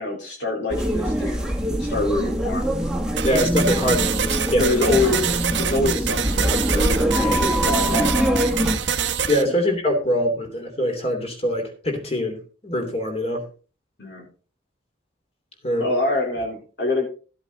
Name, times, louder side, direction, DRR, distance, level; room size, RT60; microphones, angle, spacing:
voice 1, 0.0-1.4 1.8-2.7 4.6-8.4 9.4-9.5 14.0-14.3 15.8-17.1, left 2 dB, 70° left, -2 dB, 4.0 m, -25 dB
sound 1, 0.7-8.8, equal, 5° right, 1.4 m, -23 dB
voice 2, 3.2-4.8 9.3-13.5 15.6-15.8, equal, 35° left, 3 dB, 3.0 m, -23 dB
sound 2, 3.2-9.4, right 7 dB, 75° right, 1.0 m, -26 dB
13.5 x 8.0 x 4.1 m, 0.38 s
head